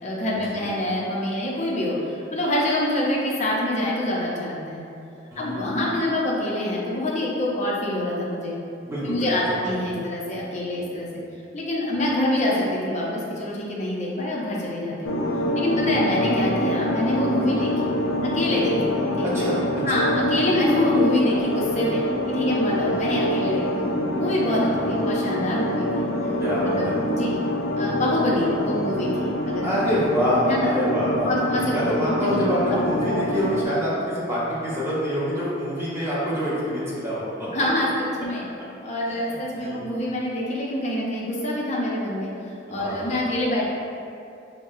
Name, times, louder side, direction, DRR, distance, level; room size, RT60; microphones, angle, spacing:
voice 1, 0.0-4.8 5.4-8.5 9.0-11.1 11.5-15.2 15.5-17.9 18.2-19.2 19.9-22.0 22.3-26.0 26.6-27.4 27.7-29.7 30.4-30.7 31.2-31.8 32.2-32.7 33.0-33.3 37.5-38.5 38.8-42.3 42.7-43.7, left 1 dB, 40° left, -4 dB, 0.7 m, -25 dB
voice 2, 5.3-5.7 8.8-9.6 9.9-10.0 11.9-12.0 15.9-16.0 17.6-17.7 19.2-19.6 19.9-20.1 23.1-23.2 24.6-24.9 26.4-27.0 29.6-31.3 31.7-37.5 39.2-39.8 42.7-43.3, equal, 15° right, -9 dB, 1.0 m, -26 dB
sound 1, 15.0-33.6, equal, 75° left, 0.4 m, -26 dB
5.5 x 2.2 x 2.7 m, 2.6 s
head